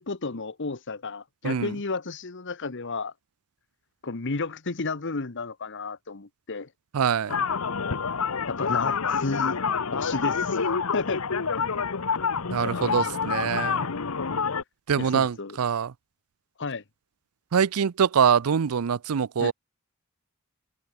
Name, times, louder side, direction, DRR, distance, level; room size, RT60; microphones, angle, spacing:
voice 1, 0.0-3.1 4.0-6.7 8.5-9.6 9.9-11.2 15.0-15.6 16.6-16.8 19.4-19.5, left 3 dB, 55° left, 1.2 m, -32 dB
voice 2, 1.4-1.8 6.9-7.4 12.5-13.9 14.9-15.9 17.5-19.5, right 7 dB, 85° right, 0.5 m, -24 dB
sound 1, 7.3-14.6, left 5 dB, 80° left, 1.0 m, -27 dB
head